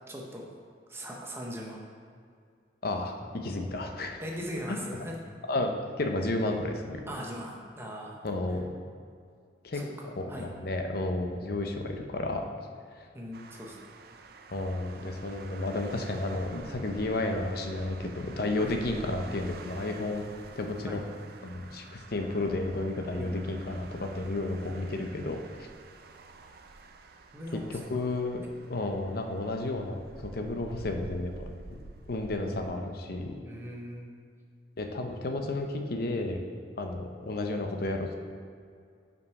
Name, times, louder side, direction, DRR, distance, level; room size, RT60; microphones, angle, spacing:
voice 1, 0.1-0.5 0.9-1.8 4.2-5.1 7.1-8.2 9.7-10.5 13.1-13.9 18.6-18.7 20.8-21.0 23.1-23.3 27.3-28.1 33.4-34.1, equal, 15° right, -1 dB, 0.8 m, -40 dB
voice 2, 2.8-3.1 3.4-4.2 4.7-4.8 5.5-7.0 8.2-8.7 9.6-9.8 10.2-12.5 13.0-13.1 14.5-20.2 20.6-21.0 21.4-25.7 27.7-31.8 32.1-33.4 34.8-36.4 36.8-38.1, left 2 dB, 55° left, 4 dB, 0.6 m, -32 dB
sound 1, 13.3-32.7, right 3 dB, 55° right, 0.4 m, -49 dB
5.5 x 5.3 x 4.7 m, 2.2 s
head